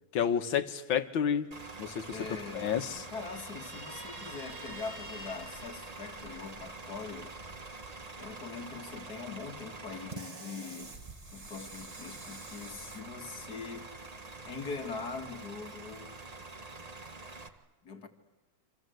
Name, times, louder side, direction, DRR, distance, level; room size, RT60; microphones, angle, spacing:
voice 1, 0.1-1.5 1.8-2.2 2.5-3.0, left 8 dB, 75° left, 2.0 m, -30 dB
Bus / Idling, 1.5-17.5, right 3 dB, 25° right, 1.2 m, -46 dB
voice 2, 2.1-7.3 8.2-11.0 11.3-13.9 14.5-16.1 17.8-18.1, left 4 dB, 50° left, 2.3 m, -42 dB
Guitar, 3.2-6.8, right 1 dB, 50° right, 5.3 m, -49 dB
28.5 x 25.5 x 8.0 m
omnidirectional pair, 2.2 m